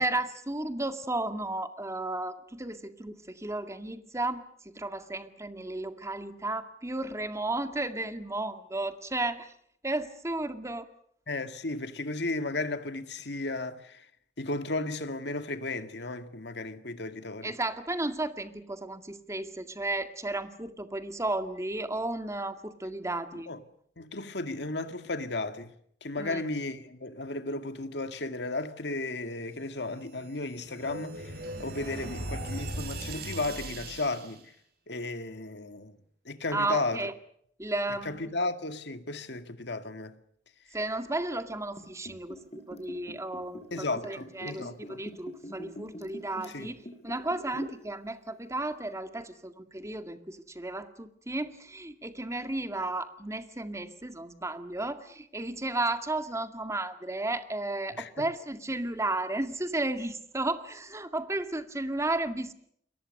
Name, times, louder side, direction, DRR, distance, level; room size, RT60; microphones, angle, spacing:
voice 1, 0.0-9.5 9.8-10.9 17.4-23.5 26.2-26.4 36.5-37.1 37.6-38.3 40.7-42.4 42.7-62.5, right 2 dB, 15° right, 2.1 m, -33 dB
voice 2, 11.3-14.1 14.4-17.5 23.3-23.6 24.0-25.7 26.0-31.3 31.6-34.5 34.9-36.0 36.3-37.0 38.1-40.2 43.7-45.0 46.5-46.7 57.9-58.3, left 2 dB, 65° left, 2.1 m, -34 dB
sound 1, 29.9-34.4, right 1 dB, 60° right, 5.2 m, -39 dB
Liquid, 41.7-47.9 48.2-48.3, left 1 dB, 35° left, 7.1 m, -44 dB
29.5 x 22.5 x 6.6 m
head